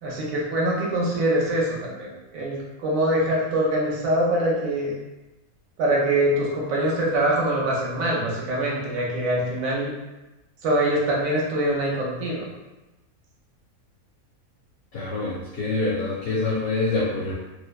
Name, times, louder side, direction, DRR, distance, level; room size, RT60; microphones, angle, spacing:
voice 1, 0.0-4.9 5.8-9.9 10.6-12.4, right 1 dB, 75° right, -4 dB, 1.0 m, -24 dB
voice 2, 14.9-17.4, left 3 dB, 65° left, -6 dB, 0.7 m, -26 dB
2.6 x 2.1 x 2.2 m, 1.0 s
omnidirectional pair, 1.5 m